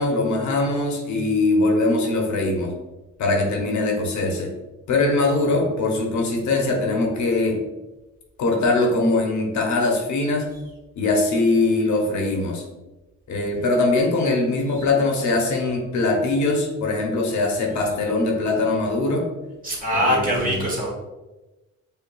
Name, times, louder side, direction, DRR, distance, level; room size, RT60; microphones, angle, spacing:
voice 1, 0.0-2.7 3.2-4.5 4.9-7.6 8.4-10.5 11.0-12.6 13.3-19.3 20.0-20.6, left 2 dB, 70° left, 1 dB, 0.8 m, -22 dB
voice 2, 19.6-20.9, equal, 25° right, -3 dB, 1.5 m, -22 dB
5.0 x 2.5 x 2.3 m, 1.1 s
cardioid pair, 90°, 30 cm